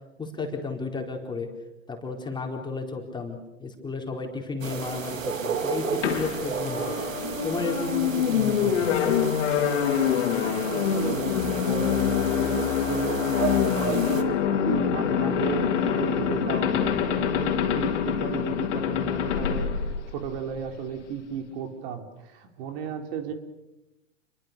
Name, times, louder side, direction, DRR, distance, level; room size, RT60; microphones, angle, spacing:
voice 1, 0.2-1.5 1.9-7.0 7.4-8.9, left 3 dB, 10° left, 2 dB, 4.4 m, -33 dB
sound 1, 4.6-14.2, right 6 dB, 85° right, 2.8 m, -33 dB
sound 2, 6.0-20.6, left 8 dB, 70° left, 3.9 m, -25 dB
voice 2, 10.4-23.3, right 8 dB, 50° right, 5 dB, 3.8 m, -34 dB
28.5 x 23.0 x 6.9 m, 0.94 s
hypercardioid pair, 115°, 38 cm